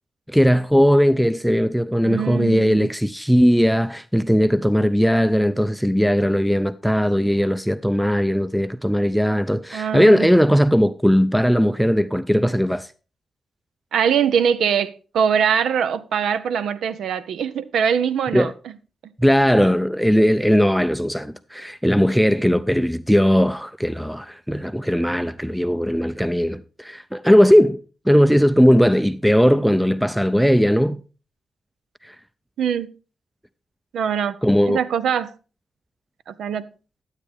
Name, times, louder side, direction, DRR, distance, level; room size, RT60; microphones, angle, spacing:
voice 1, 0.3-12.9 18.3-18.5 19.2-27.8 28.1-31.0 32.0-32.2 34.4-34.8, equal, ahead, 0.4 m, -18 dB
voice 2, 2.0-2.9 9.7-10.3 13.9-18.5 32.6-32.9 33.9-34.4 34.7-35.3 36.3-36.7, right 7 dB, 85° right, 0.5 m, -22 dB
11.5 x 8.2 x 3.4 m
cardioid pair, 70°, 0 cm